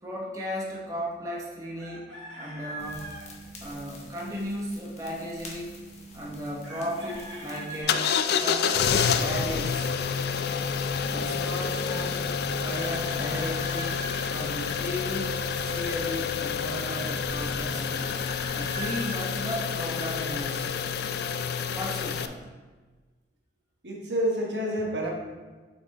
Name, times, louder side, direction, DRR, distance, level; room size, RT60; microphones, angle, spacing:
voice 1, 0.0-2.0 2.4-3.1 3.6-5.7 6.1-8.1 8.4-9.9 11.0-12.2 12.6-14.0 14.3-18.2 18.5-20.8 21.7-22.4, equal, 15° right, -3 dB, 0.9 m, -35 dB
Chicken rooster, 1.8-3.3 6.6-8.2 12.7-14.3 17.8-19.3, right 1 dB, 85° right, 1.6 m, -41 dB
sound 1, 2.8-7.8, right 1 dB, 35° left, 1.0 m, -45 dB
sound 2, 7.9-22.3, left 6 dB, 55° left, 0.3 m, -28 dB
voice 2, 23.8-25.1, equal, 65° right, -1 dB, 1.2 m, -28 dB
6.3 x 4.4 x 4.0 m, 1.3 s
head